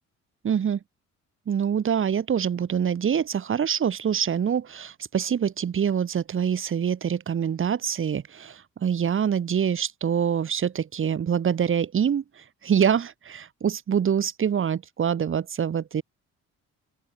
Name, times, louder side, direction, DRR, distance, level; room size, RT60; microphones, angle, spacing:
voice 1, 0.4-0.8 1.5-16.0, right 8 dB, 45° right, 1.2 m, -25 dB
open air
cardioid pair, 90°, 30 cm